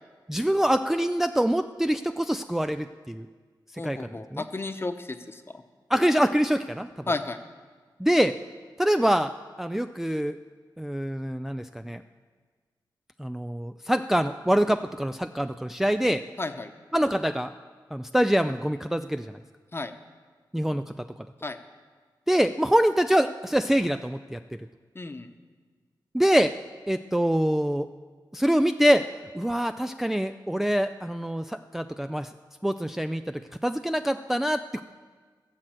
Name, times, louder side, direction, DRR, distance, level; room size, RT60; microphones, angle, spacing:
voice 1, 0.3-3.3 3.8-4.4 5.9-6.9 8.0-8.4 8.8-9.3 9.6-10.4 10.8-12.0 13.2-16.2 16.9-17.5 17.9-19.4 20.5-21.1 22.3-24.4 26.1-26.5 26.9-27.9 28.3-29.1 29.3-32.3 32.6-34.8, equal, 5° right, 8 dB, 0.3 m, -25 dB
voice 2, 3.8-5.6 7.1-7.4 16.4-16.7 19.7-19.9 21.4-21.6 24.9-25.3, left 3 dB, 30° left, 8 dB, 0.9 m, -33 dB
17.5 x 7.7 x 7.6 m, 1.5 s
wide cardioid pair, 105°, 8 cm